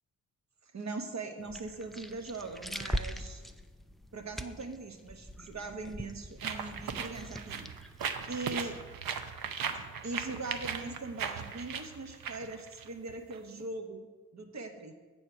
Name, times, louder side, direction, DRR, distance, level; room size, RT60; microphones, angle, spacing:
voice 1, 0.7-3.4 4.1-7.7 8.3-8.8 9.7-14.1 14.3-14.9, right 3 dB, 45° right, 5 dB, 1.1 m, -41 dB
sound 1, 1.4-8.7, equal, ahead, 0.4 m, -42 dB
sound 2, 6.4-13.4, right 7 dB, 65° right, 0.7 m, -38 dB
7.8 x 4.3 x 5.9 m, 1.4 s
supercardioid pair, 40°, 37 cm